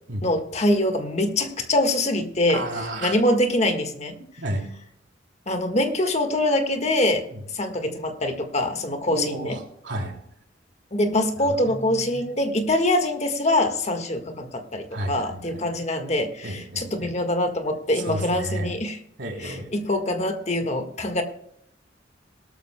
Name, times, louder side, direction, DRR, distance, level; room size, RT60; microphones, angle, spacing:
voice 1, 0.2-2.6 3.0-4.1 5.5-7.3 7.5-9.6 10.9-19.0 19.4-21.2, left 1 dB, 35° left, 5 dB, 1.6 m, -24 dB
voice 2, 2.5-3.2 4.4-4.7 7.3-7.4 9.1-10.1 11.4-12.3 14.9-15.6 16.4-17.1 17.9-18.7 19.2-19.7, right 1 dB, 85° right, 1 dB, 3.4 m, -32 dB
18.5 x 13.0 x 2.2 m, 0.71 s
head